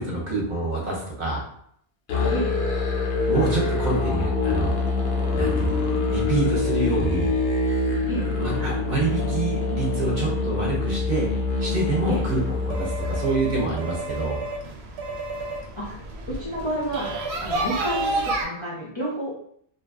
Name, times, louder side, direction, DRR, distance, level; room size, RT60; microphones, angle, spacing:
voice 1, 0.0-1.5 3.3-4.7 5.3-7.3 8.4-11.3 11.6-14.4, right 3 dB, 50° right, -3 dB, 0.8 m, -27 dB
Musical instrument, 2.1-13.7, left 3 dB, 70° left, 0.8 m, -25 dB
sound 1, 12.0-18.4, right 2 dB, 80° right, 0.8 m, -31 dB
voice 2, 16.3-17.1 17.4-19.3, right 1 dB, 40° left, -8 dB, 0.5 m, -29 dB
2.6 x 2.5 x 2.3 m, 0.67 s
omnidirectional pair, 1.1 m